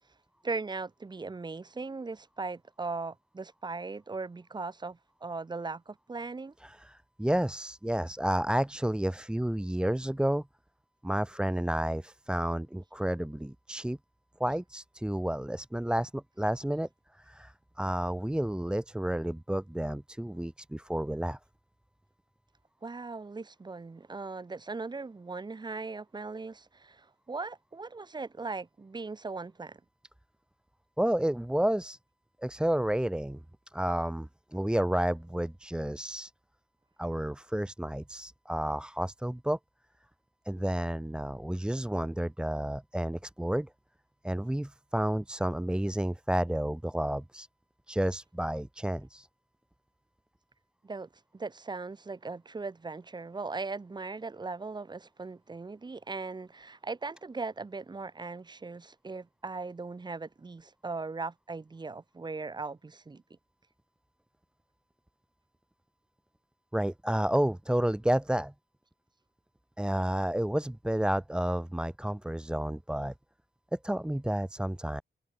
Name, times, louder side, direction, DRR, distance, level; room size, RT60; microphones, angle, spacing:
voice 1, 0.4-6.5 22.8-29.8 50.8-63.2, right 3 dB, 25° right, 5.8 m, -39 dB
voice 2, 6.6-10.4 11.0-14.0 14.4-21.4 31.0-32.0 32.4-33.4 33.7-36.3 37.0-39.6 40.5-43.7 44.2-47.5 47.9-49.3 66.7-68.5 69.8-73.1 73.7-75.0, right 1 dB, 5° right, 2.1 m, -31 dB
wide cardioid pair, 170°, 18 cm